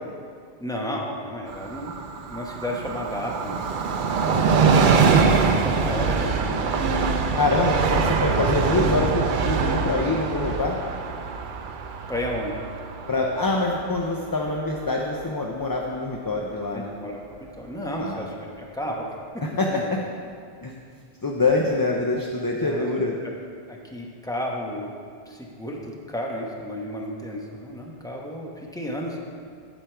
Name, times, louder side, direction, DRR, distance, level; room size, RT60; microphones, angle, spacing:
voice 1, 0.6-1.9 2.3-4.0 5.1-6.6 12.1-12.6 16.7-19.1 19.3-19.4 19.7-19.9 22.6-22.9 23.2-23.3 23.7-24.9 25.3-29.2, equal, 5° left, -1 dB, 1.0 m, -32 dB
Train, 1.5-14.8 15.1-15.2, right 5 dB, 55° right, 0.7 m, -23 dB
voice 2, 7.4-10.8 13.1-16.9 18.0-18.3 19.4-20.0 20.6-20.7 21.2-23.1, left 2 dB, 25° left, -1 dB, 0.5 m, -25 dB
8.3 x 8.2 x 4.5 m, 2.2 s
omnidirectional pair, 1.1 m